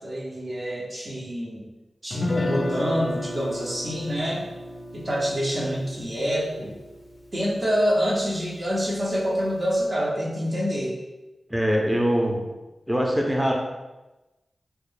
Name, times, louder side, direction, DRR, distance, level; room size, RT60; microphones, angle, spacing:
voice 1, 0.0-1.6 2.0-4.4 4.9-6.7 7.3-10.9, equal, 50° right, -6 dB, 0.7 m, -26 dB
Guitar, 2.1-8.2, left 2 dB, 50° left, 0.4 m, -33 dB
voice 2, 11.5-12.4 12.9-13.5, equal, 10° right, -1 dB, 0.6 m, -22 dB
2.3 x 2.2 x 3.3 m, 1.1 s
cardioid pair, 50°, 0 cm